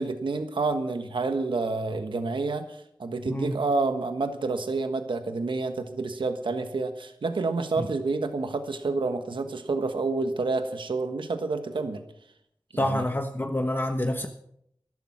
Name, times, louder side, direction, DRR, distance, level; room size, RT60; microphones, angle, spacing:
voice 1, 0.0-12.0 12.7-13.1, right 3 dB, 85° right, 8 dB, 1.4 m, -29 dB
voice 2, 3.2-3.6 7.8-7.9 12.7-14.3, left 1 dB, 25° left, 5 dB, 1.2 m, -27 dB
14.0 x 12.0 x 6.0 m, 0.71 s
cardioid pair, 50°, 8 cm